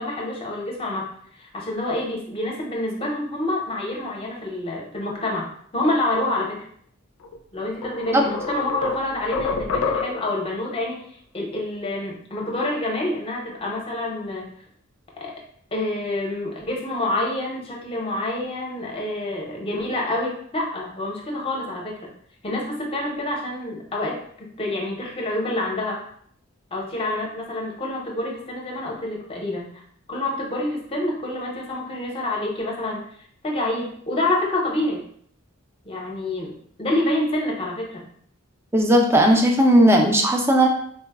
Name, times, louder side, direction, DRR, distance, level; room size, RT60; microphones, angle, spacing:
voice 1, 0.0-5.5 5.7-6.6 7.5-11.0 11.3-14.5 15.2-15.3 15.7-22.1 22.4-26.0 26.7-29.7 30.1-33.0 33.4-35.0 35.8-36.5 36.8-38.0, left 1 dB, 25° left, -2 dB, 0.6 m, -27 dB
sound 1, 7.2-7.3 7.8-10.4, left 4 dB, 70° left, 0.4 m, -27 dB
voice 2, 38.7-40.7, right 1 dB, 10° right, 2 dB, 0.3 m, -16 dB
3.8 x 2.0 x 2.2 m, 0.63 s
head